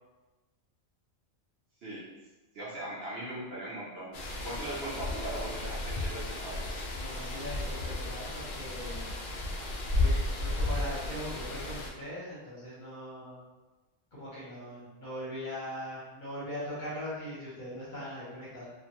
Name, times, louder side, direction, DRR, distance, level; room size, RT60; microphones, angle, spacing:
voice 1, 2.5-4.1 4.4-6.7, right 1 dB, 60° right, -8 dB, 0.7 m, -39 dB
sound 1, 4.1-11.9, left 2 dB, 90° left, 0.4 m, -33 dB
voice 2, 7.0-9.1 9.9-13.4 14.1-18.7, equal, 45° left, -8 dB, 0.7 m, -40 dB
2.4 x 2.1 x 2.9 m, 1.2 s
omnidirectional pair, 1.4 m